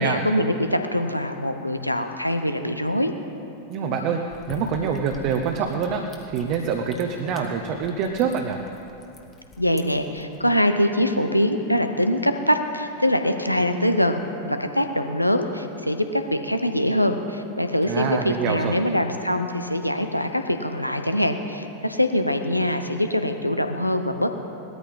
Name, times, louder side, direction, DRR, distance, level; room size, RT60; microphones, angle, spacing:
voice 1, 0.0-3.1 9.6-14.2 14.5-24.3, equal, 90° left, 7 dB, 0.8 m, -23 dB
voice 2, 3.7-6.0 6.3-8.6 17.9-18.8, right 6 dB, 45° right, 3 dB, 0.9 m, -25 dB
sound 1, 4.3-10.5, left 2 dB, 25° left, 1.6 m, -47 dB
19.0 x 13.5 x 3.7 m, 2.7 s
figure-of-eight pair, 90°, 0 cm